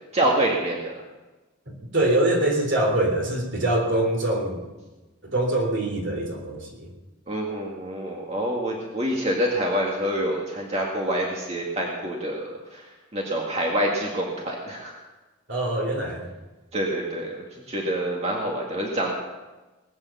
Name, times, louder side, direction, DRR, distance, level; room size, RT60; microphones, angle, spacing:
voice 1, 0.1-1.0 7.3-12.9 13.1-15.0 16.7-19.1, right 1 dB, 30° right, -2 dB, 1.9 m, -26 dB
voice 2, 1.7-4.7 5.2-6.9 15.5-16.3, right 1 dB, 60° right, 2 dB, 3.3 m, -24 dB
20.0 x 8.8 x 7.0 m, 1.2 s
head